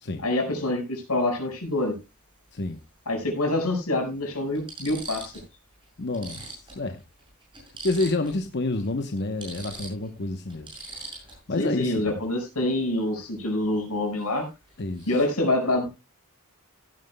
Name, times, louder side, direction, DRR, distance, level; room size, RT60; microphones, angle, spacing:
voice 1, 0.2-2.0 3.1-5.3 11.6-14.5 15.1-15.9, left 1 dB, 85° left, 5.3 m, -26 dB
sound 1, 1.8-1.9 3.3-3.4 4.0-4.1 4.5-5.5 5.8-5.9 6.1-8.4 8.7-8.9 9.2-11.6 14.2-14.4 14.7-15.1, right 3 dB, 20° right, 6.7 m, -42 dB
voice 2, 6.0-7.0 7.8-10.8 11.3-12.1 14.8-15.2, left 2 dB, 50° left, 0.9 m, -29 dB
16.0 x 11.5 x 2.2 m
head